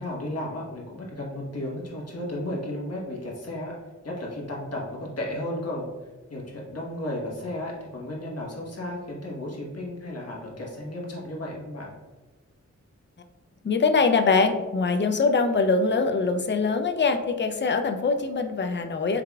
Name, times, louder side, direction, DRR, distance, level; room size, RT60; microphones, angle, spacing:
voice 1, 0.0-3.7 4.0-5.9 6.3-11.9, left 1 dB, 55° left, -3 dB, 1.3 m, -34 dB
voice 2, 13.6-19.2, left 4 dB, 40° left, 7 dB, 0.4 m, -23 dB
4.8 x 3.5 x 2.3 m, 1.2 s
wide cardioid pair, 80°, 30 cm